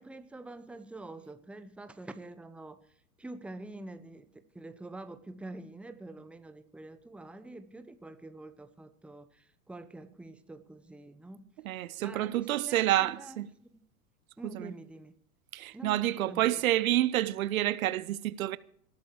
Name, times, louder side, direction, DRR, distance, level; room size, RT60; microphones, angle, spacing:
voice 1, 0.0-2.9 3.2-11.5 12.0-13.4 13.7-13.8 14.4-15.1 15.7-16.5, right 2 dB, 5° right, 0.9 m, -46 dB
voice 2, 11.6-13.5 14.4-14.7 15.5-18.6, right 14 dB, 65° right, 0.9 m, -28 dB
19.0 x 12.5 x 4.8 m
hypercardioid pair, 105°, 45 cm